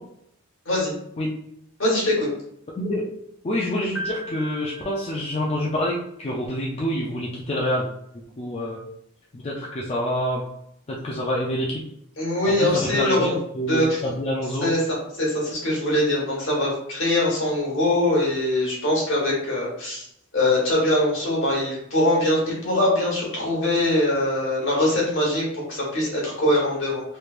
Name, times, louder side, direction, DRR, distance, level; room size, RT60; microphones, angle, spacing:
voice 1, 1.8-2.3 12.2-13.3 13.7-14.0 14.6-20.1 20.3-27.0, left 1 dB, 60° left, -4 dB, 1.4 m, -22 dB
voice 2, 3.4-7.9 8.4-8.8 9.3-10.4 10.9-11.8 12.6-14.7, equal, 30° left, -4 dB, 0.4 m, -27 dB
Piano, 4.0-6.0, equal, 80° left, 1.5 m, -37 dB
3.2 x 3.2 x 2.4 m, 0.74 s
head